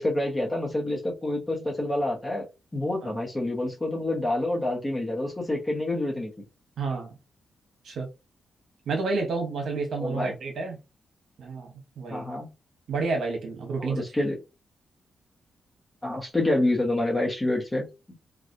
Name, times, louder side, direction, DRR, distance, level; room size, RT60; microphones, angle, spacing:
voice 1, 0.0-2.4 2.7-6.3 9.9-10.3 12.1-12.5 13.8-14.4 16.0-17.9, left 1 dB, 15° left, 0.9 m, -27 dB
voice 2, 6.8-7.1 7.8-8.1 8.9-10.8 11.4-11.7 12.0-12.3 12.9-14.0, right 3 dB, 70° right, 1.0 m, -30 dB
3.1 x 2.3 x 2.6 m
wide cardioid pair, 165°, 0 cm